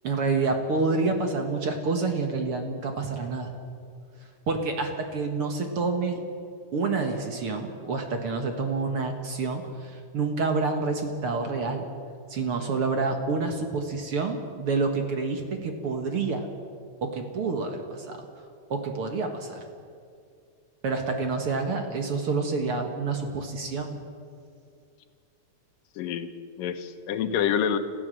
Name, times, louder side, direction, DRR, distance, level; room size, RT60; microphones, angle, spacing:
voice 1, 0.0-3.5 4.5-6.2 6.7-11.9 12.3-16.5 17.0-18.3 18.7-19.6 20.8-24.0, right 4 dB, 50° right, 4 dB, 2.0 m, -28 dB
voice 2, 26.0-27.8, left 8 dB, 90° left, 9 dB, 2.8 m, -27 dB
26.5 x 14.5 x 7.7 m, 2.3 s
omnidirectional pair, 3.8 m